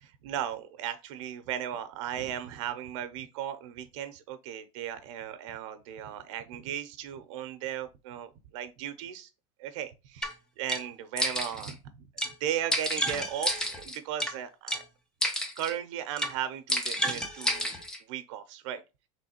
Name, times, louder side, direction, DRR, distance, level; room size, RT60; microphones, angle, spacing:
voice 1, 0.2-9.3 9.6-14.8 15.6-17.8 18.1-18.8, right 10 dB, 75° right, 0.7 m, -36 dB
sound 1, 10.2-10.3 10.7-10.8 11.2-11.7 12.2-12.3 12.7-14.3 14.7-14.8 15.2-15.7 16.2-16.3 16.7-18.0, equal, 5° left, 0.4 m, -30 dB
3.3 x 3.1 x 4.3 m
cardioid pair, 175°, 16 cm